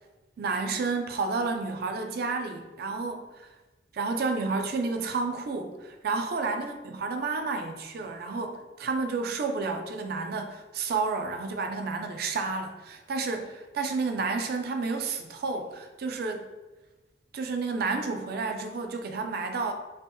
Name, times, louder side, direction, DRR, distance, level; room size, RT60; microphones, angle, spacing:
voice 1, 0.4-3.5 3.9-16.4 17.3-19.7, right 4 dB, 60° right, 5 dB, 0.4 m, -31 dB
2.8 x 2.1 x 3.4 m, 1.1 s
head